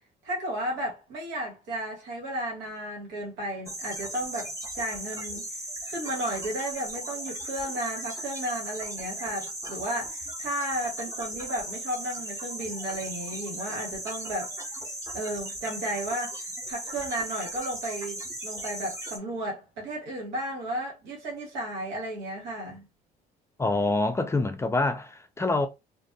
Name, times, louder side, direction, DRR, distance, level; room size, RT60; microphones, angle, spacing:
voice 1, 0.2-5.4 5.8-14.5 15.1-22.9, right 1 dB, 90° right, 1.5 m, -34 dB
sound 1, 3.7-19.2, right 1 dB, 20° right, 1.0 m, -37 dB
voice 2, 23.6-25.7, left 2 dB, 15° left, 0.4 m, -26 dB
2.5 x 2.5 x 2.3 m
cardioid pair, 105°, 17 cm